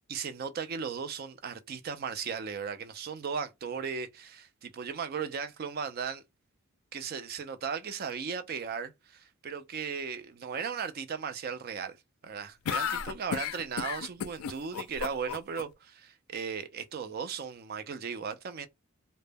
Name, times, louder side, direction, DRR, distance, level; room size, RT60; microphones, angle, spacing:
voice 1, 0.1-6.2 6.9-12.0 12.2-18.7, right 6 dB, 45° right, 0.3 m, -36 dB
sound 1, 12.6-15.6, left 8 dB, 75° left, 0.3 m, -33 dB
2.1 x 2.0 x 3.3 m
head